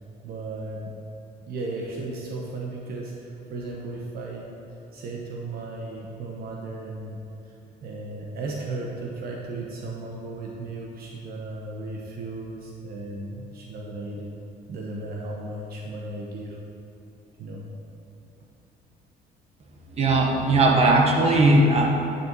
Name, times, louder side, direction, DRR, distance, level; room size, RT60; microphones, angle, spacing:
voice 1, 0.2-0.9 1.5-4.5 4.9-7.2 7.8-14.3 14.7-16.6 17.4-17.6, right 2 dB, 65° right, -2 dB, 1.0 m, -35 dB
voice 2, 19.9-21.9, right 2 dB, 40° right, -1 dB, 1.3 m, -18 dB
10.0 x 4.1 x 6.1 m, 2.8 s
cardioid pair, 110°, 17 cm